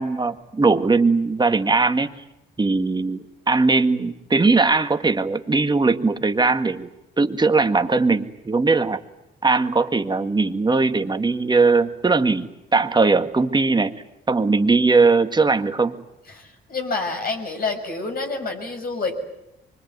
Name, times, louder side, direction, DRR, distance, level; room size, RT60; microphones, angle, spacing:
voice 1, 0.0-2.1 2.6-6.9 7.2-9.0 9.4-12.5 12.7-13.9 14.3-16.0, right 3 dB, 20° right, 7 dB, 1.8 m, -19 dB
voice 2, 16.3-19.2, left 3 dB, 50° left, 4 dB, 6.6 m, -28 dB
25.0 x 23.0 x 9.5 m, 0.89 s
cardioid pair, 90°, 20 cm